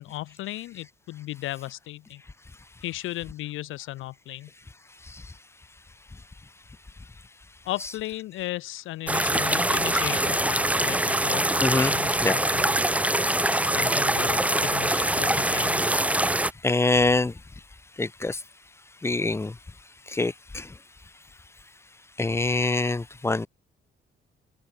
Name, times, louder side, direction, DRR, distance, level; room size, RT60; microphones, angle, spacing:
voice 1, 0.0-2.2 2.8-4.5 7.6-12.7 13.5-15.8, left 16 dB, 85° left, 0.9 m, -35 dB
sound 1, 9.1-16.5, right 1 dB, 5° right, 1.4 m, -24 dB
voice 2, 11.6-11.9 12.2-12.3 16.6-17.3 18.0-18.4 19.0-19.6 20.1-20.7 22.2-23.5, left 3 dB, 15° left, 0.6 m, -24 dB
open air
cardioid pair, 90°, 20 cm